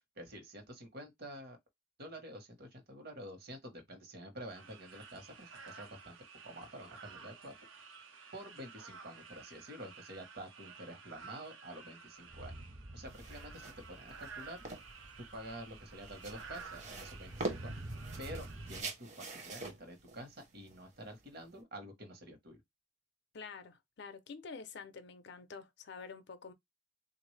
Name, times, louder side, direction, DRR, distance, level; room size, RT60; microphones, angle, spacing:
voice 1, 0.2-1.6 2.0-6.2 6.4-7.5 8.3-12.6 12.9-14.6 15.2-17.8 18.2-22.6, right 1 dB, 55° right, 1.2 m, -49 dB
sound 1, 4.4-18.8, right 5 dB, 85° right, 0.8 m, -53 dB
sound 2, 12.2-18.8, right 1 dB, 25° right, 0.4 m, -49 dB
sound 3, 13.1-21.6, right 2 dB, 40° right, 0.8 m, -45 dB
voice 2, 23.3-26.5, left 5 dB, 60° left, 0.5 m, -48 dB
3.4 x 2.5 x 3.2 m
head